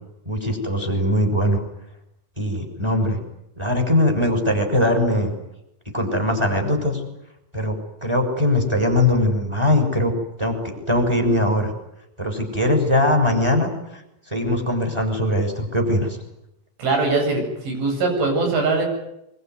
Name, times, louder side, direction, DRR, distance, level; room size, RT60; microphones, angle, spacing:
voice 1, 0.3-1.6 2.4-3.2 3.6-5.3 5.9-7.0 7.5-7.8 8.0-10.1 10.4-11.7 12.2-13.7 14.3-16.2, left 1 dB, 5° right, 5 dB, 5.7 m, -21 dB
voice 2, 16.8-18.8, right 3 dB, 75° right, 3 dB, 10.5 m, -21 dB
25.0 x 23.5 x 9.6 m, 0.85 s
omnidirectional pair, 5.5 m